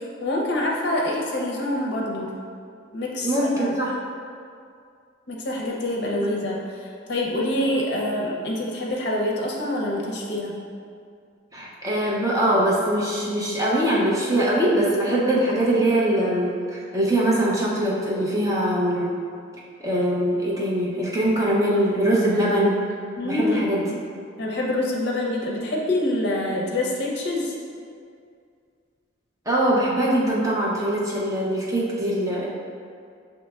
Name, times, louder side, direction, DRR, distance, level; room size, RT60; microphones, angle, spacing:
voice 1, 0.0-2.3 2.9-3.7 5.3-10.6 23.2-23.7 24.4-27.5, left 1 dB, 55° left, -3 dB, 0.6 m, -26 dB
voice 2, 3.2-3.9 11.5-19.1 19.8-22.8 23.2-23.8 29.5-32.5, right 1 dB, 15° right, -5 dB, 0.5 m, -22 dB
6.1 x 2.8 x 2.3 m, 2.3 s
head